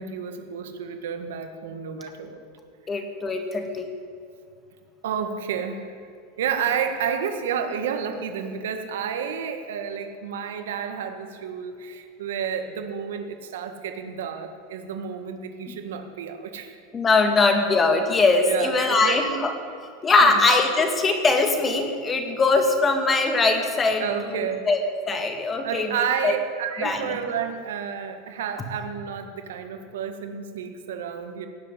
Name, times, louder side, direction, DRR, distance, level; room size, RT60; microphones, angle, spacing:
voice 1, 0.0-2.4 2.9-3.0 5.0-5.9 6.4-16.7 18.4-19.2 20.2-20.4 24.0-24.7 25.6-31.5, right 7 dB, 90° right, 7 dB, 1.7 m, -30 dB
voice 2, 2.9-3.9 16.9-19.5 20.0-24.8 25.1-26.0 26.2-26.3 26.8-27.2, left 3 dB, 20° left, 5 dB, 1.8 m, -21 dB
17.0 x 7.5 x 9.8 m, 2.3 s
supercardioid pair, 145°, 0 cm